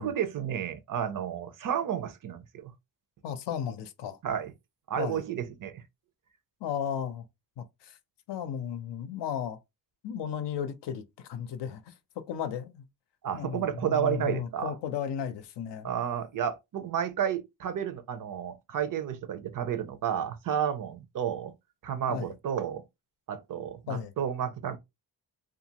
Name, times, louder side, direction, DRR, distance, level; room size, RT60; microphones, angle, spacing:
voice 1, 0.0-2.7 4.2-4.5 4.9-5.8 13.2-14.8 15.8-21.5 21.8-22.8 23.3-24.8, right 9 dB, 50° right, 0.5 m, -31 dB
voice 2, 3.2-4.2 5.0-5.2 6.6-7.3 7.6-8.0 8.3-9.6 10.0-11.9 12.3-12.8 13.3-15.9 22.1-22.3 23.9-24.1, left 8 dB, 80° left, 0.6 m, -35 dB
2.7 x 2.4 x 2.8 m
cardioid pair, 130°, 42 cm